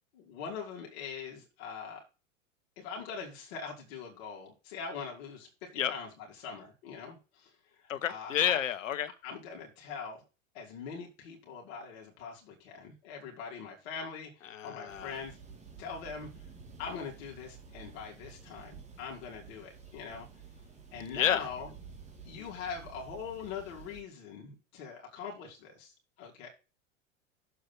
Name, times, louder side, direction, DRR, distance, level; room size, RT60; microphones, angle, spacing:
voice 1, 0.1-2.0 2.8-8.6 9.2-10.2 10.5-15.4 15.8-16.3 16.8-20.3 20.9-21.7 22.2-26.5, left 6 dB, 50° left, 2.9 m, -42 dB
voice 2, 7.9-9.1 14.5-15.2 21.1-21.4, left 9 dB, 75° left, 1.1 m, -30 dB
sound 1, 14.9-24.0, right 5 dB, 15° right, 2.6 m, -51 dB
7.2 x 4.7 x 6.1 m
figure-of-eight pair, 95°, 39 cm